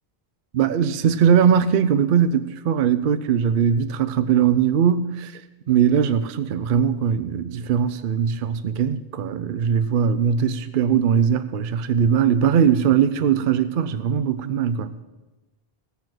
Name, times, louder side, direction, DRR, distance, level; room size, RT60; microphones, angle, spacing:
voice 1, 0.5-5.4 5.7-14.9, right 8 dB, 60° right, 0.7 m, -20 dB
17.0 x 7.0 x 6.0 m
omnidirectional pair, 1.0 m